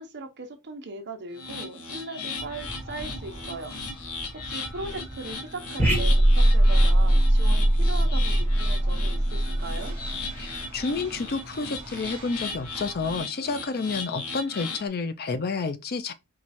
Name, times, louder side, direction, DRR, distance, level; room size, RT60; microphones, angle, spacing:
voice 1, 0.0-3.7 4.3-9.9, right 3 dB, 50° right, 0.9 m, -39 dB
sound 1, 1.3-14.9, left 4 dB, 85° left, 1.1 m, -37 dB
sound 2, 2.4-13.2, right 1 dB, 25° right, 1.4 m, -44 dB
sound 3, 5.8-10.4, right 1 dB, 10° left, 1.3 m, -21 dB
voice 2, 10.4-16.1, left 4 dB, 45° left, 0.5 m, -30 dB
4.6 x 2.3 x 4.2 m
head